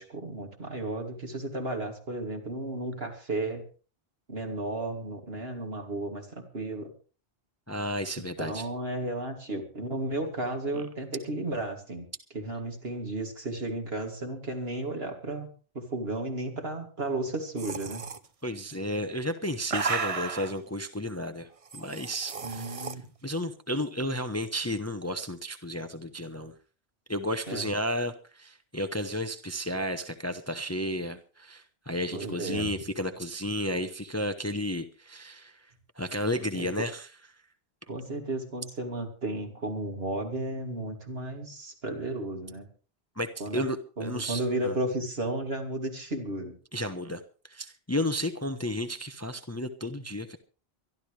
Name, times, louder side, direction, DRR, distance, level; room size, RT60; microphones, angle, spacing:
voice 1, 0.0-3.6 4.3-6.9 8.4-12.1 12.3-15.5 15.7-18.0 22.4-23.1 27.5-27.7 32.1-32.7 36.5-36.7 37.9-42.7 43.4-43.7 44.0-46.5, right 2 dB, 65° right, 3 dB, 3.0 m, -33 dB
voice 2, 7.7-8.6 10.7-10.8 18.4-21.5 21.7-22.9 23.2-26.5 27.1-35.5 36.0-37.1 43.2-44.7 46.7-47.2 47.5-50.4, equal, 15° left, 9 dB, 0.8 m, -32 dB
sound 1, 17.6-18.2 19.2-20.5 21.7-22.9, right 5 dB, 35° right, 0.8 m, -33 dB
24.0 x 12.5 x 3.3 m, 0.37 s
omnidirectional pair, 1.1 m